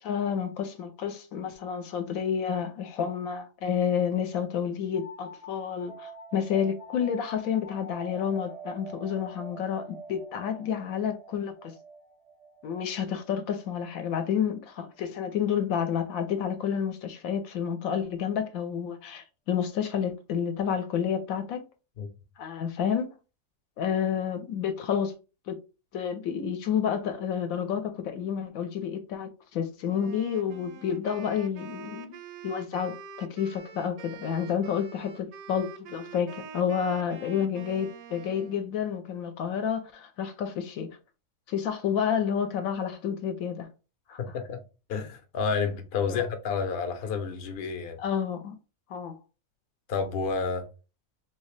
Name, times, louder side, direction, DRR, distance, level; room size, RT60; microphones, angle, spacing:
voice 1, 0.0-11.7 12.6-21.6 22.4-23.1 23.8-25.1 25.5-25.6 25.9-32.2 32.4-40.9 41.5-43.7 44.1-44.2 46.1-46.3 48.0-48.5 48.9-49.1, left 8 dB, 80° left, 1.0 m, -30 dB
sound 1, 4.9-14.3, right 2 dB, 40° right, 0.5 m, -46 dB
Wind instrument woodwind instrument, 29.9-38.7, right 6 dB, 80° right, 1.0 m, -46 dB
voice 2, 44.2-44.6 44.9-48.0 49.9-50.7, left 5 dB, 55° left, 0.7 m, -30 dB
3.1 x 2.8 x 3.1 m
omnidirectional pair, 1.5 m